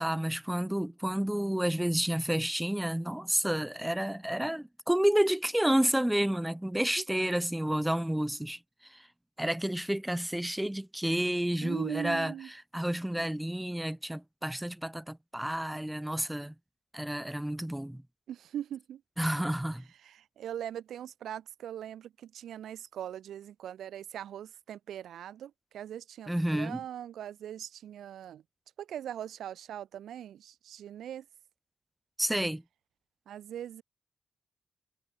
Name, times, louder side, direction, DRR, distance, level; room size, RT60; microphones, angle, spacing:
voice 1, 0.0-9.1 9.4-12.3 12.7-16.5 16.9-18.0 19.2-19.9 26.3-26.8 32.2-32.6, right 1 dB, 10° right, 1.3 m, -30 dB
voice 2, 11.6-12.5 18.3-19.0 20.0-28.4 28.8-31.2 33.3-33.8, right 10 dB, 85° right, 3.3 m, -41 dB
supercardioid pair, 45°, 0 cm